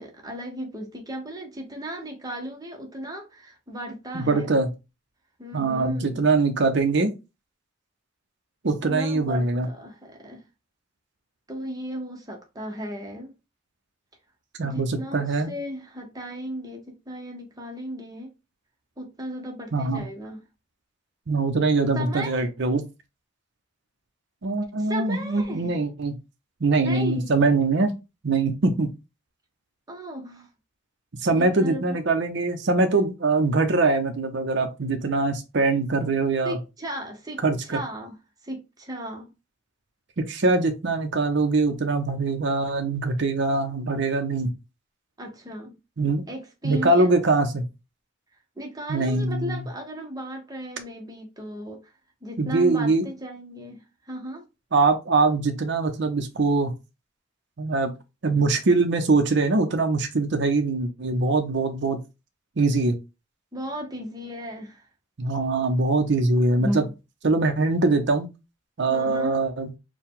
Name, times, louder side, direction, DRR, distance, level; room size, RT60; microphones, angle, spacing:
voice 1, 0.0-4.6 5.4-6.3 8.6-10.4 11.5-13.3 14.6-18.3 19.0-20.4 21.9-22.4 24.8-25.8 26.8-27.3 29.9-30.5 31.3-31.8 36.4-37.4 37.7-38.2 38.4-39.3 45.2-45.8 46.3-47.2 48.6-51.9 52.2-54.4 63.5-64.9 66.6-66.9 68.9-69.4, right 1 dB, 20° right, 0.9 m, -35 dB
voice 2, 4.1-4.7 5.5-7.1 8.6-9.7 14.6-15.5 19.7-20.0 21.3-22.8 24.4-26.2 26.6-27.9 28.2-28.9 31.2-36.6 37.4-37.8 40.2-44.5 46.0-46.3 46.6-47.6 48.9-49.6 52.4-53.1 54.7-56.7 57.6-57.9 58.2-62.0 62.6-63.0 65.2-66.8 67.2-68.3 68.8-69.7, right 3 dB, 60° right, 0.7 m, -23 dB
4.5 x 2.3 x 3.6 m
head